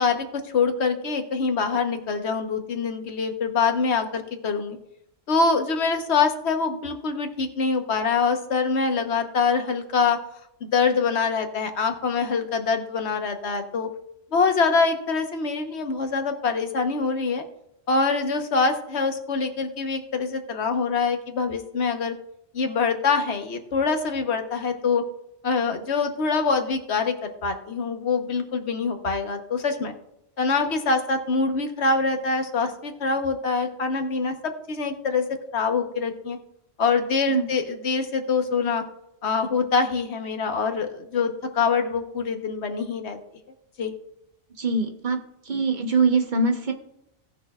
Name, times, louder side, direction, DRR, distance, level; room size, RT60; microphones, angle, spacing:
voice 1, 0.0-4.8 5.3-10.2 10.6-13.9 14.3-17.4 17.9-22.1 22.5-25.1 25.4-29.9 30.4-35.2 35.5-36.4 36.8-38.8 39.2-43.2 43.8-43.9, left 4 dB, 80° left, 6 dB, 1.3 m, -24 dB
voice 2, 44.6-45.2 45.5-46.7, right 4 dB, 50° right, 5 dB, 1.0 m, -23 dB
18.0 x 6.4 x 2.3 m, 0.82 s
omnidirectional pair, 1.1 m